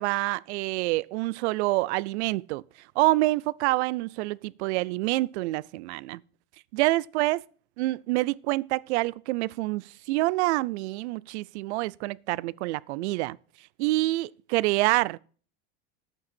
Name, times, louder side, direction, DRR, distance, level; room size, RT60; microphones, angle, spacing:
voice 1, 0.0-2.6 3.0-6.2 6.7-7.4 7.8-13.4 13.8-15.2, right 19 dB, 80° right, 0.5 m, -27 dB
10.5 x 8.8 x 4.3 m
supercardioid pair, 160°, 33 cm